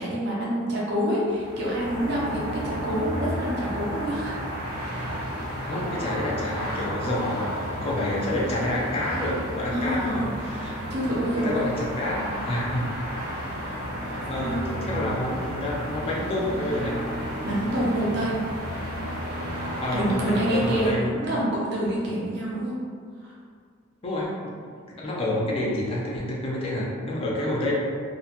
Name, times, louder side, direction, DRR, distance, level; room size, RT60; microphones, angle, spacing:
voice 1, 0.0-4.4 9.7-10.3 10.9-11.6 14.4-15.1 17.4-18.4 19.9-22.8 23.2-23.3, right 1 dB, 50° right, -5 dB, 0.5 m, -27 dB
sound 1, 1.2-20.9, equal, 85° right, 0.8 m, -33 dB
voice 2, 5.6-10.8 11.4-12.9 13.6-13.8 14.3-17.0 19.8-21.1 24.0-24.5 25.0-27.7, left 1 dB, 25° left, -4 dB, 0.4 m, -28 dB
2.5 x 2.2 x 2.8 m, 2.1 s
head